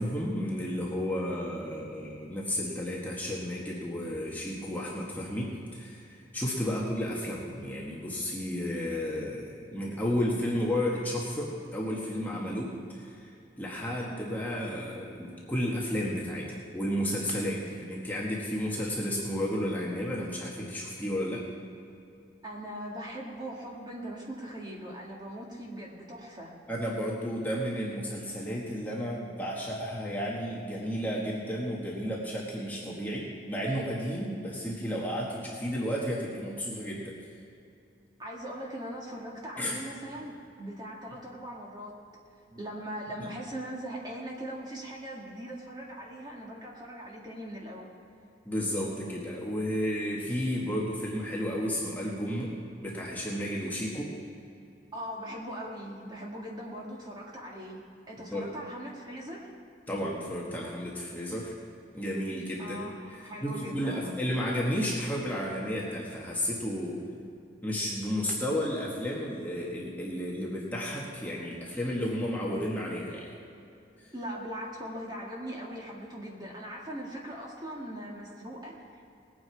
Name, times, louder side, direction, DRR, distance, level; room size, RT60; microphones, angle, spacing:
voice 1, 0.0-13.3 13.6-21.4 26.7-37.1 39.6-39.8 48.4-52.5 52.8-54.2 58.3-58.5 59.9-61.5 61.9-62.9 63.4-67.0 67.6-73.3, equal, 10° left, -4 dB, 1.5 m, -32 dB
voice 2, 22.4-26.5 38.2-40.3 40.6-41.9 42.6-47.9 54.9-59.5 62.6-64.2 74.1-79.1, equal, 20° right, -3 dB, 1.9 m, -40 dB
19.5 x 9.0 x 4.7 m, 2.6 s
head